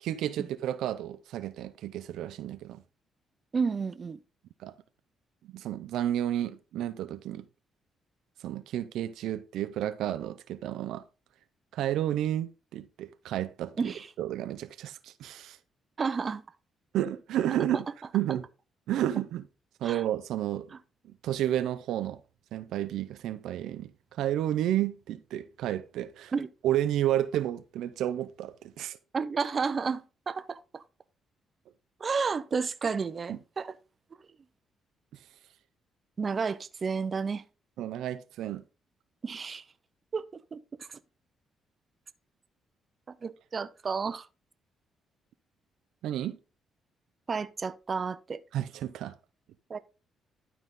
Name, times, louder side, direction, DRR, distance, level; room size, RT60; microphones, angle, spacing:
voice 1, 0.0-2.8 4.6-4.7 5.5-7.5 8.4-11.0 11.7-13.8 14.2-15.6 16.9-17.9 18.1-18.4 18.9-19.4 19.8-20.7 21.2-22.2 22.5-23.9 24.2-26.3 26.6-29.0 33.3-33.4 37.8-38.6 46.0-46.4 48.5-49.1, right 12 dB, 85° right, 0.5 m, -31 dB
voice 2, 3.5-4.2 13.8-14.1 16.0-16.4 19.8-20.0 20.7-20.8 26.3-26.5 29.1-30.8 32.0-33.8 36.2-37.4 39.2-39.6 40.1-41.0 43.1-44.3 47.3-48.4 49.7-49.8, right 5 dB, 40° right, 0.6 m, -31 dB
11.5 x 4.0 x 3.6 m
cardioid pair, 90°, 0 cm